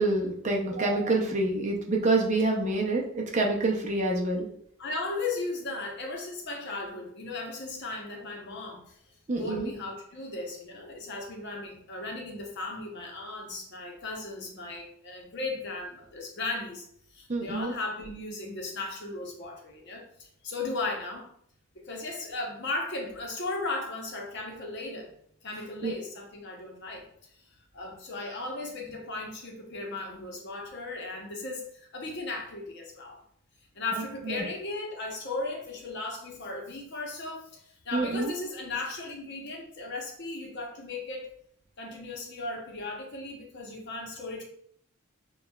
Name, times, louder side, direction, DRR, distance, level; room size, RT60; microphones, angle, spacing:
voice 1, 0.0-4.5 9.3-9.7 17.3-17.7 25.8-25.9 33.9-34.4 37.9-38.3, right 2 dB, 35° right, 0 dB, 0.6 m, -27 dB
voice 2, 4.8-9.0 9.4-16.9 17.1-21.3 21.7-25.1 25.4-27.1 27.7-33.2 33.7-41.3 41.8-44.4, left 3 dB, 50° left, 0 dB, 0.8 m, -36 dB
6.1 x 2.3 x 2.3 m, 0.67 s
head